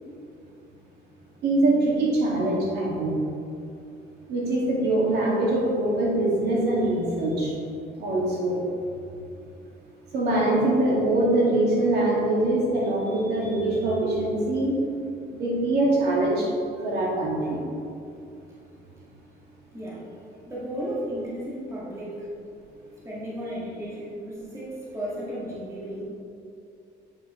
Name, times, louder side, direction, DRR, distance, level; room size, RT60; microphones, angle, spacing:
voice 1, 1.4-3.1 4.3-7.5 8.0-8.6 10.1-14.7 15.3-16.5 16.8-17.6, right 2 dB, 65° right, -4 dB, 2.1 m, -23 dB
voice 2, 19.7-20.1 20.5-22.3 23.0-26.0, equal, 15° right, -8 dB, 2.0 m, -34 dB
8.2 x 6.2 x 4.5 m, 2.5 s
cardioid pair, 170°, 18 cm